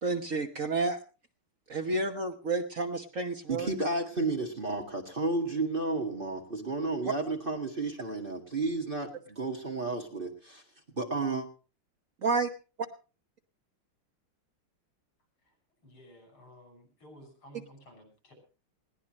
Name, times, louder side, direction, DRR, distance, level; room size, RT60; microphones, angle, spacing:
voice 1, 0.0-1.0 1.7-3.7 12.2-12.5, right 3 dB, 45° right, 5 dB, 1.4 m, -30 dB
voice 2, 3.5-10.6 11.0-11.5, right 2 dB, 25° right, 2 dB, 2.0 m, -32 dB
voice 3, 15.4-18.3, equal, 85° left, 5 dB, 7.0 m, -54 dB
20.5 x 17.0 x 3.1 m, 0.34 s
omnidirectional pair, 2.3 m